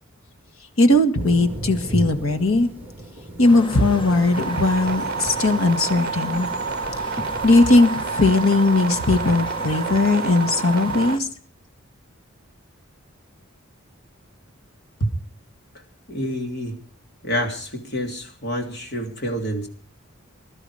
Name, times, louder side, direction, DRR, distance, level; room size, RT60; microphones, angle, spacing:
voice 1, 0.8-2.7 3.4-6.5 7.4-11.3, left 2 dB, 85° left, 8 dB, 1.9 m, -18 dB
Thunder, 1.2-9.9, right 2 dB, 10° right, 3.2 m, -36 dB
sound 1, 3.4-11.2, equal, 25° left, 1.4 m, -34 dB
sound 2, 4.3-11.1, right 5 dB, 45° right, 0.8 m, -29 dB
voice 2, 16.1-16.8 17.2-19.7, equal, 50° left, 3 dB, 3.3 m, -27 dB
21.0 x 12.5 x 5.0 m, 0.42 s
head